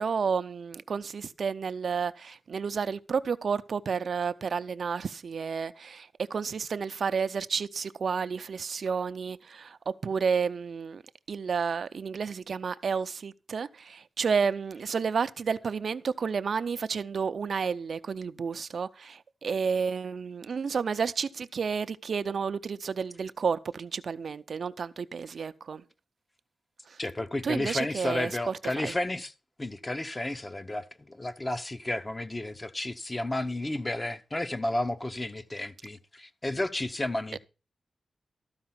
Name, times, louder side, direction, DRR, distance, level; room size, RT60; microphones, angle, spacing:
voice 1, 0.0-11.0 11.3-25.8 26.9-27.0 27.4-28.9 37.3-37.4, right 6 dB, 70° right, 0.5 m, -31 dB
voice 2, 27.0-29.3 29.6-37.4, left 1 dB, 25° left, 0.8 m, -32 dB
13.0 x 4.8 x 5.8 m
wide cardioid pair, 85°, 0 cm